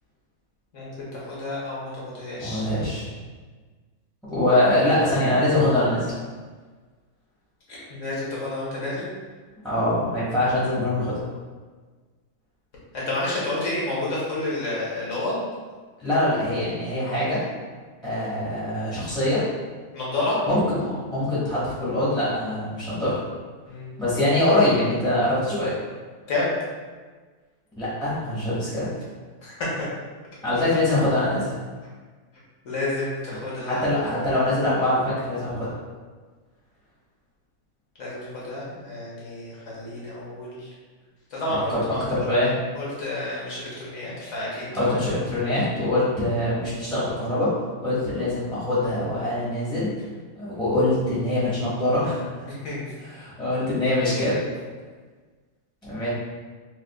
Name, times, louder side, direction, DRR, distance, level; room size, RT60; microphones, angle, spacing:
voice 1, 0.7-2.7 7.7-9.1 12.9-15.4 19.9-20.4 23.7-23.9 26.3-26.5 29.4-29.7 32.6-33.9 38.0-40.7 41.3-42.3 42.7-44.9 52.5-52.8, left 2 dB, 55° left, -7 dB, 1.3 m, -30 dB
voice 2, 2.4-3.1 4.3-6.1 9.6-11.1 16.0-17.4 18.0-19.4 20.5-23.2 24.0-25.7 27.8-28.9 30.4-31.5 33.6-35.7 41.7-41.8 42.1-42.5 44.7-47.5 47.8-49.9 50.3-52.2 53.1-54.4 55.8-56.1, left 1 dB, ahead, -11 dB, 0.9 m, -23 dB
4.8 x 2.3 x 2.3 m, 1.4 s
omnidirectional pair, 1.7 m